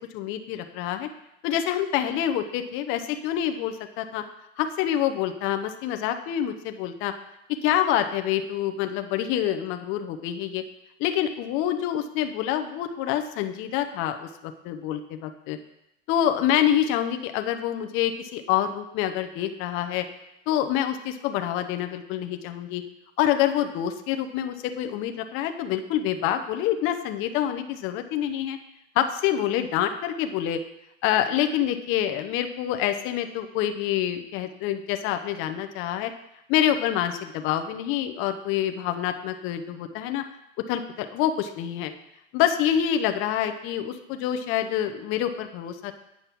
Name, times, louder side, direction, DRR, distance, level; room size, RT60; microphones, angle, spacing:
voice 1, 0.1-1.1 1.4-4.2 4.6-7.1 7.6-10.6 11.0-14.3 14.6-15.6 16.1-20.0 20.5-22.8 23.2-28.6 29.0-30.6 31.0-36.1 36.5-40.2 40.7-41.9 42.3-46.0, left 10 dB, 35° left, 7 dB, 0.7 m, -26 dB
8.5 x 5.3 x 5.9 m, 0.82 s
hypercardioid pair, 125°, 38 cm